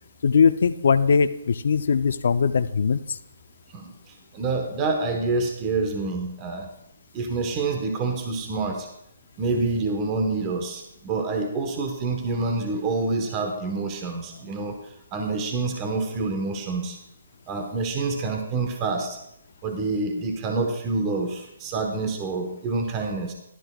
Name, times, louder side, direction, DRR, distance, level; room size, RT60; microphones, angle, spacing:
voice 1, 0.2-3.2, left 6 dB, 65° left, 12 dB, 0.6 m, -20 dB
voice 2, 3.7-6.7 7.1-8.9 9.4-17.0 17.5-19.2 19.6-23.3, right 3 dB, 25° right, 4 dB, 1.2 m, -27 dB
15.0 x 12.5 x 2.4 m, 0.78 s
hypercardioid pair, 150°, 0 cm